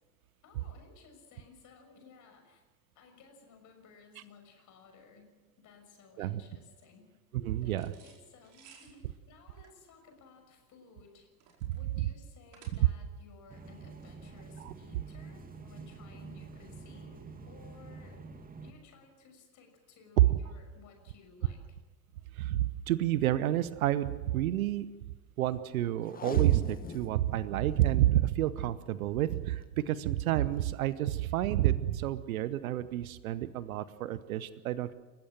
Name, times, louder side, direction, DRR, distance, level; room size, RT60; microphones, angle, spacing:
voice 1, 0.4-2.6 2.9-5.3 5.6-7.1 7.6-11.3 11.7-18.2 18.6-21.6, left 4 dB, 35° left, 5 dB, 6.4 m, -57 dB
voice 2, 7.3-7.9 12.0-12.1 14.6-14.7 20.2-20.3 22.3-24.9 25.4-34.9, right 13 dB, 55° right, 16 dB, 1.1 m, -29 dB
sound 1, 7.7-13.1, right 6 dB, 35° right, 4.9 m, -60 dB
sound 2, 13.5-18.7, right 4 dB, 15° right, 2.2 m, -47 dB
Packing tape duct tape, 26.1-27.2 27.5-27.6 27.8-27.9 28.5-28.8 29.8-30.0 30.6-30.7, left 6 dB, 15° left, 1.5 m, -42 dB
29.5 x 15.0 x 7.6 m, 1.3 s
figure-of-eight pair, 80°, 50 cm